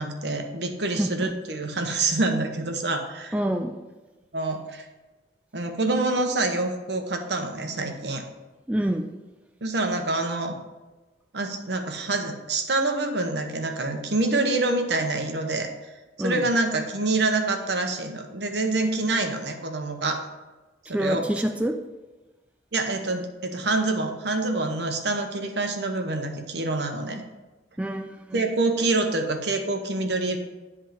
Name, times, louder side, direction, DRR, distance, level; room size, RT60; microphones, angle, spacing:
voice 1, 0.0-3.3 4.3-4.9 5.5-8.2 9.6-10.6 11.3-15.7 16.2-20.2 20.9-21.3 22.7-27.2 28.3-30.4, right 2 dB, 70° right, 5 dB, 1.0 m, -26 dB
voice 2, 1.0-1.3 3.3-3.8 8.7-9.0 16.2-16.4 20.9-21.7 27.8-28.4, right 1 dB, 5° right, 4 dB, 0.3 m, -27 dB
10.5 x 3.6 x 5.1 m, 1.2 s
head